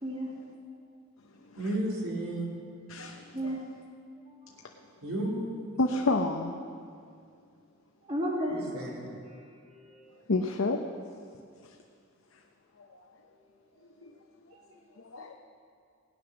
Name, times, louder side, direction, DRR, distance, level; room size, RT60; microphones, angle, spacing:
voice 1, 0.0-0.3 3.3-3.6 4.3-4.6 8.0-8.7 9.6-10.1 14.5-14.6, equal, 25° right, -2 dB, 2.2 m, -34 dB
voice 2, 1.6-2.5 5.0-5.7 8.5-9.0, right 1 dB, 80° right, -3 dB, 3.2 m, -33 dB
voice 3, 2.9-3.6 5.8-6.5 10.3-10.8 11.6-11.7 12.8-13.0 14.0-14.1 15.0-15.3, left 2 dB, 65° left, 3 dB, 0.8 m, -30 dB
17.5 x 9.7 x 6.1 m, 2.3 s
head